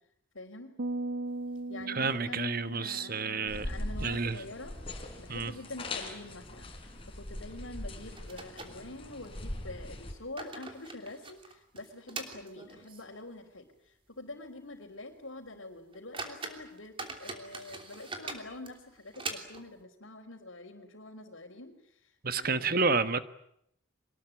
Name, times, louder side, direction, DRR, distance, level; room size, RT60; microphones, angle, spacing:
voice 1, 0.3-0.7 1.7-6.7 7.0-23.0, left 2 dB, 75° left, 3.8 m, -46 dB
sound 1, 0.8-4.2, right 2 dB, 70° right, 1.1 m, -39 dB
sound 2, 1.4-2.4 2.7-2.8 3.2-3.3 3.9-4.4 4.7-4.8 5.4-5.6 5.9-6.1 7.4-7.5 8.2-9.4 10.0-13.2 13.6-13.7 14.2-14.3 14.8-14.9 15.5-15.6 15.9-19.8, right 3 dB, 25° right, 3.1 m, -43 dB
voice 2, 1.9-3.7 4.0-4.4 5.3-5.5 22.2-23.2, right 4 dB, 45° right, 1.3 m, -30 dB
sound 3, 3.5-10.1, left 1 dB, 25° left, 4.2 m, -41 dB
24.0 x 20.5 x 9.9 m
head